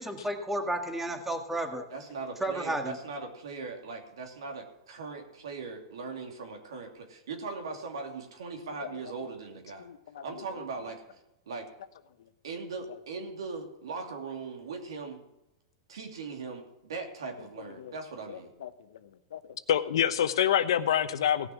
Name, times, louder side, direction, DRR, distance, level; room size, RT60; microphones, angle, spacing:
voice 1, 0.0-1.8 2.4-3.0, right 1 dB, 5° right, 5 dB, 1.6 m, -32 dB
voice 2, 1.9-9.9 10.2-11.0 11.5-11.7 12.4-15.2 15.9-18.5, right 4 dB, 85° right, 3 dB, 2.7 m, -39 dB
voice 3, 9.8-10.2 17.8-17.9 18.3-18.7 19.3-19.4 19.7-21.5, left 10 dB, 80° left, 12 dB, 0.9 m, -27 dB
17.0 x 6.4 x 6.0 m, 0.92 s
hypercardioid pair, 125°, 3 cm